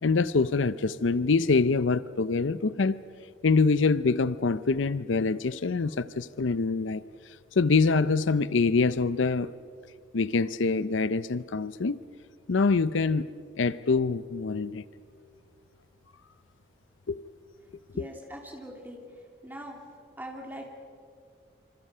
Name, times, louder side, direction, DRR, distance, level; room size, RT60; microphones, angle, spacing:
voice 1, 0.0-3.0 3.4-7.0 7.6-9.5 10.1-12.0 12.5-13.3 13.6-14.8 17.1-17.2 18.0-18.1, left 4 dB, 85° left, 0.6 m, -25 dB
voice 2, 17.9-19.0 19.4-19.8 20.2-20.7, right 1 dB, 10° right, 2.9 m, -41 dB
27.0 x 25.5 x 5.6 m
head